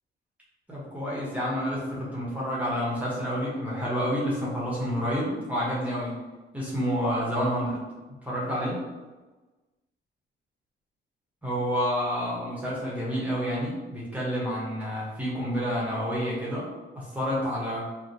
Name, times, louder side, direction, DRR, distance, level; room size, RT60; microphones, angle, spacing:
voice 1, 0.7-6.2 6.5-7.8 8.2-8.8 11.4-16.7 16.9-17.9, equal, 5° right, -7 dB, 0.8 m, -29 dB
2.8 x 2.1 x 2.6 m, 1.2 s
cardioid pair, 90°, 20 cm